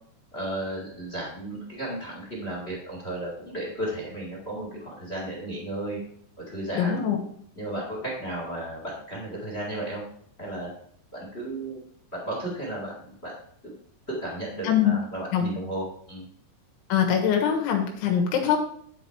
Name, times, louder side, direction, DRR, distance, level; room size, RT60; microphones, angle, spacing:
voice 1, 0.3-6.0 6.4-7.0 7.5-10.0 10.4-10.7 11.1-11.8 12.1-13.3 13.6-13.7 14.1-16.3, right 1 dB, 30° left, -2 dB, 1.2 m, -34 dB
voice 2, 6.8-7.2 14.6-14.9 15.3-15.4 16.9-18.6, left 8 dB, 85° left, 3 dB, 3.6 m, -23 dB
10.0 x 5.9 x 4.6 m, 0.63 s
omnidirectional pair, 5.3 m